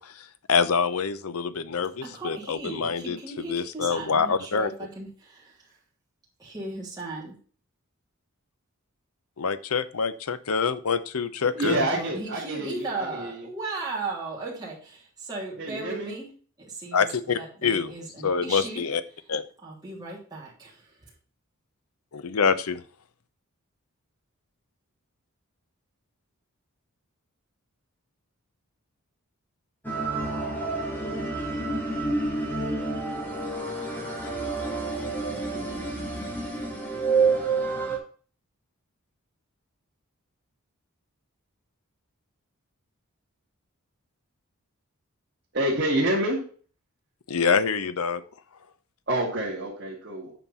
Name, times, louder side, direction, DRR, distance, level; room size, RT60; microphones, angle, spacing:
voice 1, 0.0-3.2 3.5-4.7 9.4-11.8 16.9-17.9 18.2-19.0 19.3-19.4 22.1-22.8 47.3-48.2, left 5 dB, 75° left, 13 dB, 0.7 m, -26 dB
voice 2, 2.0-5.8 6.4-7.4 11.6-16.3 16.6-17.1 17.3-18.9 19.6-21.1, right 3 dB, 20° right, -5 dB, 3.1 m, -36 dB
voice 3, 11.6-13.4 15.6-16.1 45.5-46.4 49.1-50.3, right 1 dB, 45° right, -6 dB, 2.5 m, -27 dB
sound 1, 29.8-38.0, right 3 dB, 10° left, 2.0 m, -28 dB
9.1 x 4.5 x 5.5 m, 0.42 s
head